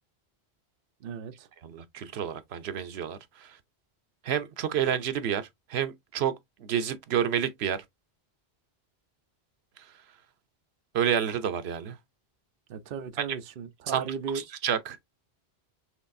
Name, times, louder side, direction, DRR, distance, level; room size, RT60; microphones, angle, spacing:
voice 1, 1.0-1.5 12.7-14.4, right 6 dB, 65° right, 0.8 m, -36 dB
voice 2, 1.6-3.6 4.2-6.3 6.6-7.8 9.8-9.9 10.9-12.0 13.2-13.3 13.9-14.0 14.3-15.0, right 8 dB, 85° right, 0.9 m, -29 dB
6.3 x 3.2 x 2.5 m
omnidirectional pair, 1.1 m